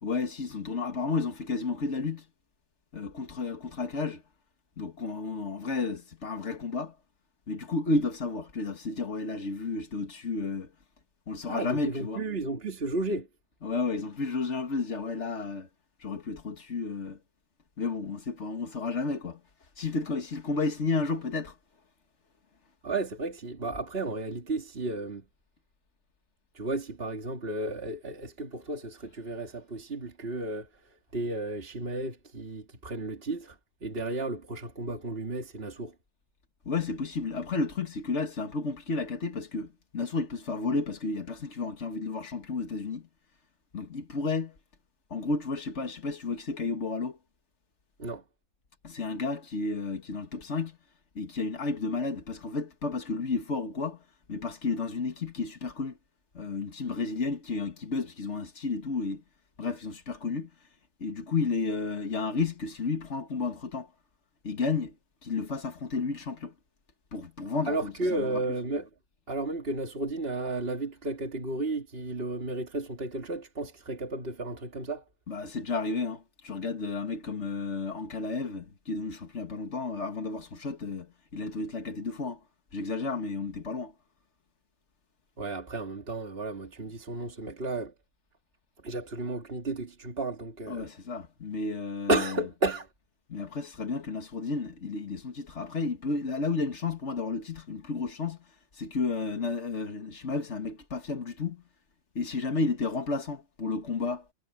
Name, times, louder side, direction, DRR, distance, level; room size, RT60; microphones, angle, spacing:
voice 1, 0.0-2.3 2.9-4.2 4.8-7.0 7.5-10.7 11.3-12.2 13.6-15.7 16.0-17.2 17.8-19.4 19.8-21.6 36.7-43.1 43.7-44.6 45.1-47.2 48.8-50.8 51.2-54.0 54.3-56.0 56.3-59.2 59.6-60.5 61.0-63.9 64.4-65.0 65.2-66.5 67.1-68.4 75.3-82.4 82.7-83.9 90.7-92.3 93.3-98.4 98.7-101.6 102.2-104.2, left 3 dB, 75° left, 2.1 m, -32 dB
voice 2, 11.5-13.3 22.8-25.3 26.5-35.9 48.0-48.2 67.7-68.9 69.3-75.0 85.4-87.9 88.8-90.9 92.1-92.9, right 2 dB, 55° right, 2.5 m, -33 dB
omnidirectional pair, 1.2 m